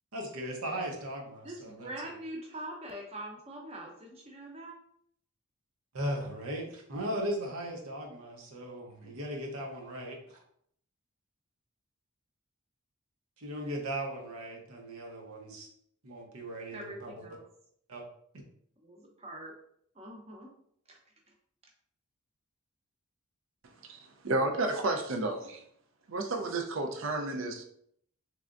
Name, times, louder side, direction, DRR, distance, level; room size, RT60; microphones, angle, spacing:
voice 1, 0.1-1.9 5.9-10.4 13.4-15.7 16.0-17.2 17.9-18.0, right 1 dB, 90° right, 0.9 m, -37 dB
voice 2, 1.4-4.8 16.7-17.4 18.8-19.5 19.9-20.5 20.9-21.0, right 1 dB, 30° right, 0.7 m, -43 dB
voice 3, 24.2-25.6 26.1-27.6, right 2 dB, 60° right, 0.5 m, -31 dB
3.6 x 3.3 x 2.5 m
head